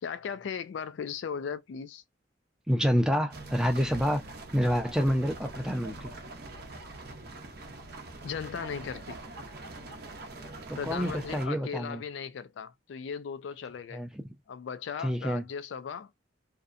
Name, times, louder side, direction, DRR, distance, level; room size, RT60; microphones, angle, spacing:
voice 1, 0.0-2.0 8.2-9.2 10.8-14.0 14.5-16.1, left 6 dB, 75° left, 0.3 m, -37 dB
voice 2, 2.7-4.2 4.5-6.1 10.7-12.0 13.9-14.2 15.0-15.4, equal, 5° right, 0.5 m, -28 dB
sound 1, 3.3-11.5, right 2 dB, 55° right, 0.6 m, -43 dB
2.7 x 2.1 x 2.4 m
head